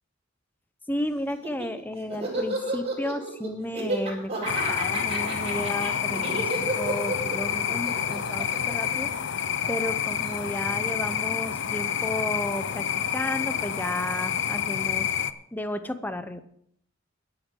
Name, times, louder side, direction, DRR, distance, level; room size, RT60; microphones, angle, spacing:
voice 1, 0.9-9.1 9.7-12.9 13.1-15.1 15.5-16.4, left 1 dB, 10° left, 10 dB, 0.7 m, -33 dB
Laughter, 1.3-9.7, right 2 dB, 30° right, 4.7 m, -32 dB
sound 1, 4.5-15.3, left 8 dB, 60° left, 0.6 m, -28 dB
23.5 x 8.1 x 3.8 m, 0.70 s
head